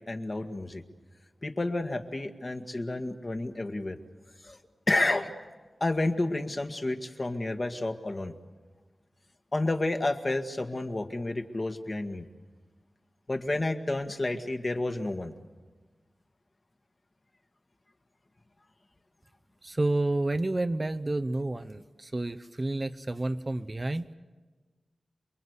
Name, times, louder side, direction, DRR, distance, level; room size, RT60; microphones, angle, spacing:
voice 1, 0.1-0.8 1.4-4.0 4.4-4.6 4.9-5.3 5.8-8.3 9.5-12.3 13.3-15.3, left 2 dB, 35° left, 5 dB, 1.7 m, -30 dB
voice 2, 19.6-24.1, right 2 dB, 30° right, 9 dB, 0.7 m, -30 dB
28.5 x 22.0 x 8.2 m, 1.4 s
wide cardioid pair, 95°, 0 cm